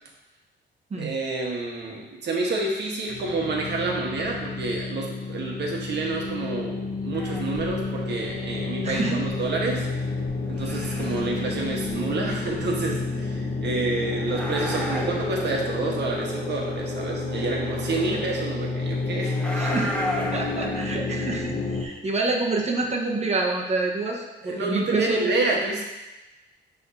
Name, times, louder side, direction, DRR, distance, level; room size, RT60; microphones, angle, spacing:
voice 1, 1.0-9.9 10.5-19.3 24.4-25.8, right 3 dB, 60° right, -1 dB, 1.4 m, -28 dB
sound 1, 3.1-21.8, left 3 dB, 35° left, 1.4 m, -30 dB
sound 2, 7.1-12.9 14.0-15.5 17.3-18.3 19.3-20.8, equal, 5° left, 1.1 m, -35 dB
voice 2, 8.8-9.2 19.6-25.3, right 3 dB, 35° right, -1 dB, 1.3 m, -27 dB
10.5 x 3.5 x 2.8 m, 1.1 s
cardioid pair, 90°, 20 cm